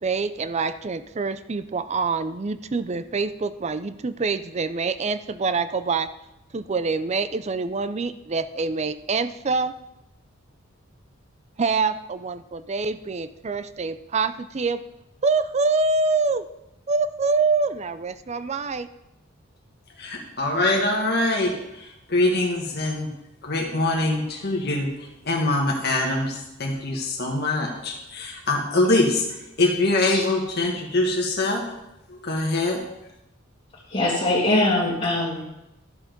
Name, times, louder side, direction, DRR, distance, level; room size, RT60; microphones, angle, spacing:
voice 1, 0.0-6.1 6.5-9.8 11.6-14.8 15.2-16.5 16.9-18.9, right 4 dB, 35° right, 13 dB, 0.5 m, -25 dB
voice 2, 20.0-23.1 23.4-31.6 32.1-32.8, left 2 dB, 50° left, 0 dB, 1.6 m, -24 dB
voice 3, 33.9-35.4, left 2 dB, 30° left, -9 dB, 2.2 m, -22 dB
12.5 x 7.1 x 5.2 m, 0.88 s
head